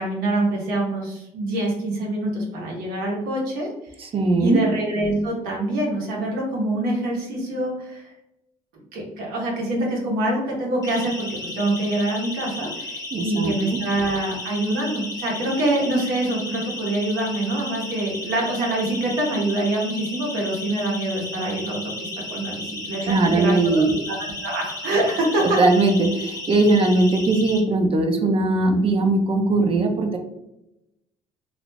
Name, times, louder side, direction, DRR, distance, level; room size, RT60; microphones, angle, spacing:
voice 1, 0.0-3.7 4.4-8.1 8.9-23.8 24.4-25.6, right 1 dB, 85° right, -2 dB, 1.0 m, -25 dB
voice 2, 4.0-4.6 13.1-13.8 23.0-24.0 25.6-30.2, right 2 dB, 40° right, 3 dB, 0.5 m, -20 dB
Siren, 10.8-27.6, left 2 dB, 25° left, 0.8 m, -34 dB
2.5 x 2.0 x 3.2 m, 0.88 s
supercardioid pair, 85°, 15 cm